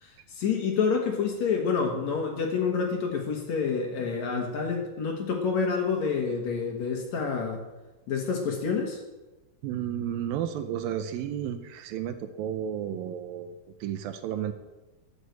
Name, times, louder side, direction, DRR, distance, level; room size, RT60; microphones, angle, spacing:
voice 1, 0.0-7.6 8.1-9.0, left 5 dB, 60° left, 2 dB, 2.2 m, -28 dB
voice 2, 9.6-13.6 13.8-14.5, right 10 dB, 80° right, 9 dB, 2.3 m, -32 dB
12.0 x 6.5 x 7.9 m, 1.1 s
omnidirectional pair, 4.4 m